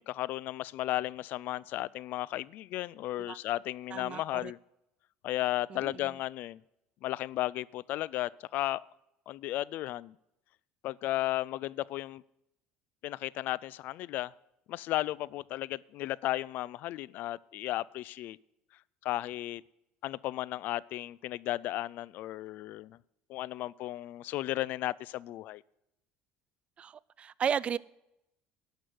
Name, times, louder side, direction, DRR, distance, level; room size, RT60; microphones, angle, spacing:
voice 1, 0.0-4.6 5.2-6.6 7.0-8.8 9.3-10.1 10.8-12.2 13.0-14.3 14.7-18.4 19.0-19.6 20.0-23.0 23.3-25.6, left 15 dB, 60° left, 0.4 m, -34 dB
voice 2, 3.9-4.5 5.7-5.9 26.8-26.9 27.2-27.8, right 8 dB, 35° right, 0.4 m, -33 dB
11.5 x 6.2 x 9.4 m
supercardioid pair, 105°, 3 cm